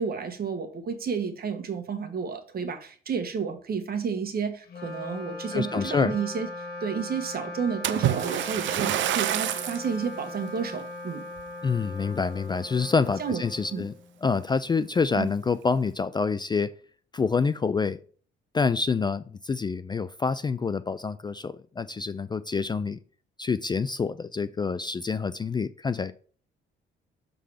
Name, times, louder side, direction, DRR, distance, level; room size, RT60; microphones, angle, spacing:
voice 1, 0.0-11.2 13.2-13.4 13.7-13.9 15.1-15.3, right 6 dB, 50° right, 1.4 m, -31 dB
Wind instrument woodwind instrument, 4.6-14.2, left 2 dB, 50° left, 1.4 m, -39 dB
voice 2, 5.5-6.2 11.6-13.9 14.2-16.7 17.1-18.0 18.5-23.0 23.4-26.1, left 5 dB, 20° left, 0.3 m, -27 dB
Splash splatter, 7.8-9.9 10.5-10.8 11.4-11.5, right 12 dB, 70° right, 0.5 m, -27 dB
6.7 x 3.8 x 4.9 m
cardioid pair, 90°, 20 cm